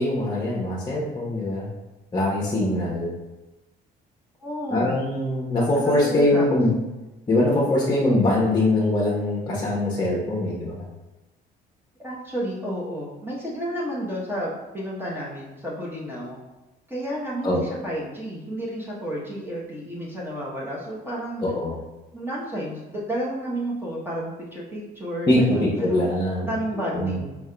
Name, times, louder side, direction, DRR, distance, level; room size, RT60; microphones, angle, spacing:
voice 1, 0.0-1.7 2.1-3.1 4.7-6.7 7.3-10.8 17.4-17.6 21.4-21.7 25.3-26.5 26.7-27.2, left 1 dB, 25° left, -5 dB, 0.9 m, -22 dB
voice 2, 4.4-5.0 5.8-6.4 12.0-16.4 16.9-21.4 22.1-26.1 26.4-27.4, right 1 dB, 10° right, -5 dB, 0.9 m, -31 dB
4.7 x 3.5 x 2.2 m, 1.1 s
cardioid pair, 110°, 17 cm